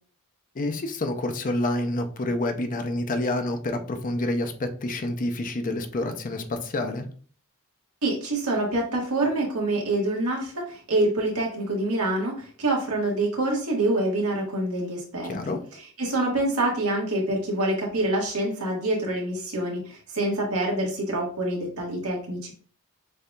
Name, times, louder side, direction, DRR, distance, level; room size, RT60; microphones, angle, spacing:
voice 1, 0.5-7.0 15.2-15.6, left 1 dB, 40° left, 6 dB, 0.5 m, -28 dB
voice 2, 8.0-15.5 16.0-22.5, right 1 dB, 85° right, -1 dB, 1.5 m, -26 dB
6.5 x 2.7 x 2.3 m, 0.43 s
head